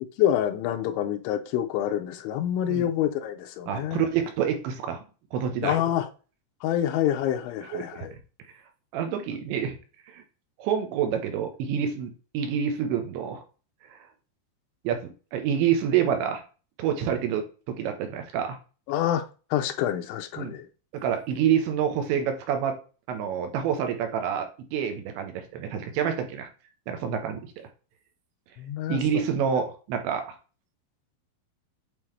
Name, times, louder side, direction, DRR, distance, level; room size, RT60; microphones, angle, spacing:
voice 1, 0.0-4.1 5.6-6.1 6.6-8.1 18.9-19.2 19.5-20.7 28.6-29.2, left 11 dB, 85° left, 3.1 m, -27 dB
voice 2, 3.7-5.0 5.3-5.8 7.7-8.2 8.9-9.8 10.1-10.2 10.6-13.4 14.8-16.4 16.8-18.6 20.4-20.6 20.9-22.8 23.1-26.5 26.9-27.4 28.9-30.3, right 8 dB, 80° right, 3.4 m, -27 dB
8.8 x 3.8 x 3.3 m
omnidirectional pair, 5.2 m